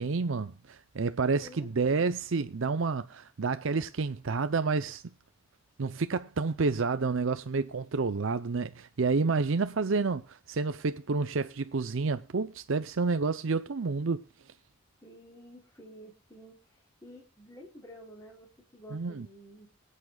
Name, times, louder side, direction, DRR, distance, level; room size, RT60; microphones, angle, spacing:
voice 1, 0.0-5.0 5.8-14.2 18.9-19.3, right 4 dB, 65° right, 0.6 m, -29 dB
voice 2, 1.4-2.1 15.0-19.7, equal, 15° left, 3.2 m, -51 dB
23.5 x 8.5 x 2.3 m
head